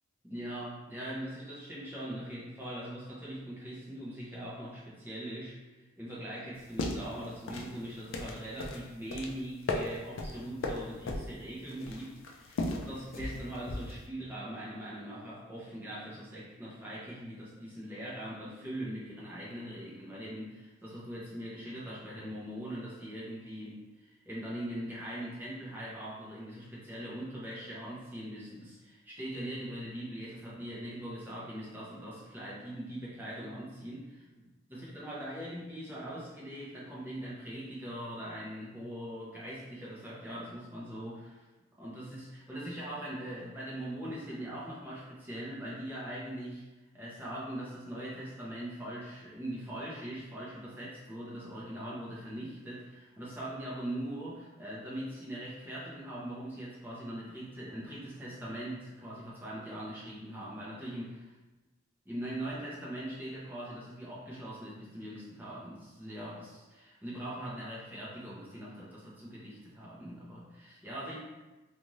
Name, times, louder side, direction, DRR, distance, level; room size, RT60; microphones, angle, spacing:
voice 1, 0.2-34.2 34.7-41.4 41.8-46.7 46.9-61.3 62.0-71.2, right 1 dB, 10° right, -8 dB, 0.7 m, -41 dB
sound 1, 6.6-14.1, left 2 dB, 65° left, 0.4 m, -37 dB
2.5 x 2.4 x 3.0 m, 1.1 s
head